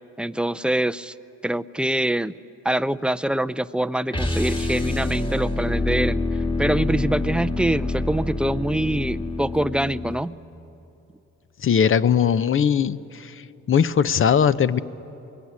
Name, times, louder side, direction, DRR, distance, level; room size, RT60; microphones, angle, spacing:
voice 1, 0.2-1.1 1.4-2.3 2.6-6.2 6.6-10.3, right 1 dB, 5° right, 14 dB, 0.5 m, -24 dB
sound 1, 4.1-10.2, left 2 dB, 15° left, 1.8 m, -26 dB
voice 2, 11.6-13.3 13.7-14.8, left 7 dB, 45° left, 15 dB, 0.7 m, -19 dB
23.5 x 21.5 x 9.6 m, 2.9 s
cardioid pair, 90°, 30 cm